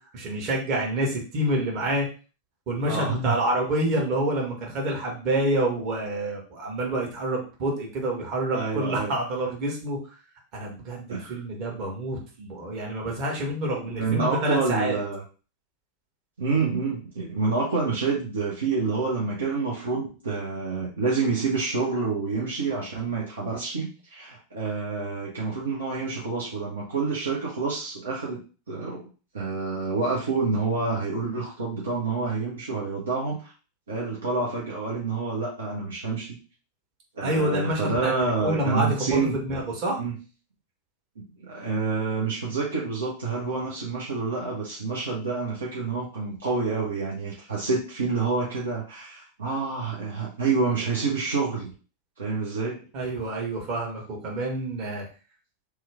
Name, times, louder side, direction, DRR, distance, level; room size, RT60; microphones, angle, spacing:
voice 1, 0.1-2.1 2.7-10.0 10.5-15.0 37.2-38.1 38.4-40.0 52.9-55.0, right 1 dB, 40° right, -1 dB, 1.4 m, -27 dB
voice 2, 2.9-3.3 3.9-4.0 8.5-9.2 11.1-11.4 13.9-15.2 16.4-29.1 29.3-33.5 33.9-36.4 37.2-39.3 40.0-40.1 41.2-51.7 52.2-52.9, right 4 dB, 70° right, -4 dB, 0.8 m, -28 dB
3.1 x 2.3 x 3.4 m, 0.36 s
figure-of-eight pair, 90°, 0 cm